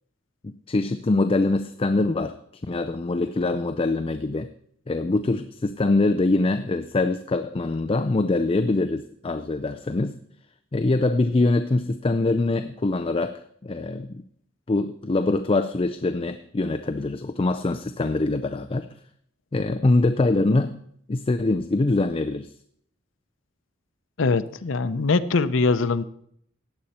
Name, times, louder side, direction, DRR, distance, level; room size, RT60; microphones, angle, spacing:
voice 1, 0.4-2.4 2.7-4.5 4.9-10.2 10.7-14.2 14.7-18.9 19.5-20.8 21.1-22.5, left 2 dB, 30° left, 8 dB, 0.4 m, -24 dB
voice 2, 24.2-26.0, left 3 dB, 85° left, 13 dB, 0.6 m, -22 dB
15.0 x 9.3 x 4.3 m, 0.67 s
head